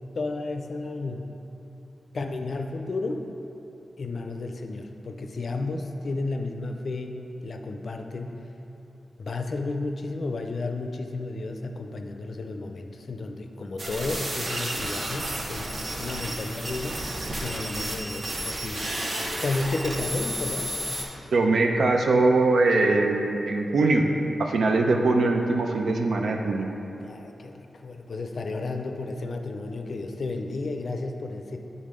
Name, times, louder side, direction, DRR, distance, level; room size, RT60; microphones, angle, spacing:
voice 1, 0.1-1.3 2.1-3.3 4.0-8.5 9.2-17.0 17.4-20.8 27.0-31.6, left 3 dB, 50° left, 5 dB, 0.4 m, -32 dB
sound 1, 13.8-21.0, right 1 dB, 50° right, 1.0 m, -32 dB
voice 2, 21.3-24.1 24.4-26.7, right 3 dB, 80° right, 3 dB, 0.5 m, -22 dB
9.3 x 4.0 x 3.7 m, 3.0 s
wide cardioid pair, 145°, 0 cm